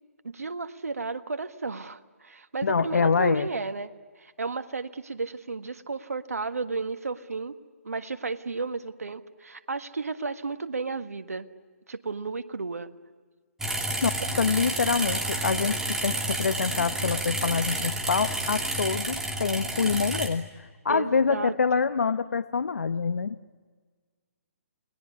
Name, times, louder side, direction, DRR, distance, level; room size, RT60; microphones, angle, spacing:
voice 1, 0.2-3.9 4.2-7.5 7.8-11.5 11.9-12.9 20.9-21.5, right 4 dB, 80° right, 9 dB, 1.6 m, -33 dB
voice 2, 2.6-3.5 14.0-14.1 14.4-20.5 20.8-23.4, left 5 dB, 75° left, 12 dB, 0.9 m, -26 dB
sound 1, 13.6-20.3, right 1 dB, 5° right, 3.0 m, -30 dB
29.5 x 20.5 x 9.6 m, 1.5 s
figure-of-eight pair, 140°, 8 cm